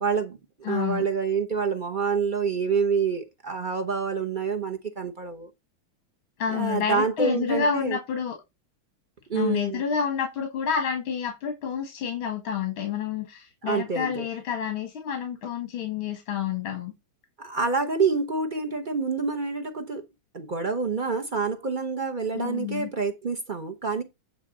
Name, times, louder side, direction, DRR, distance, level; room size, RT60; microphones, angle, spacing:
voice 1, 0.0-5.5 6.5-8.0 9.3-9.8 13.6-14.3 17.4-20.1 20.3-24.0, right 5 dB, 45° right, 0.6 m, -27 dB
voice 2, 0.6-1.1 6.4-8.4 9.3-16.9 22.3-22.9, left 7 dB, 80° left, 2.6 m, -29 dB
9.5 x 3.2 x 6.2 m
omnidirectional pair, 2.2 m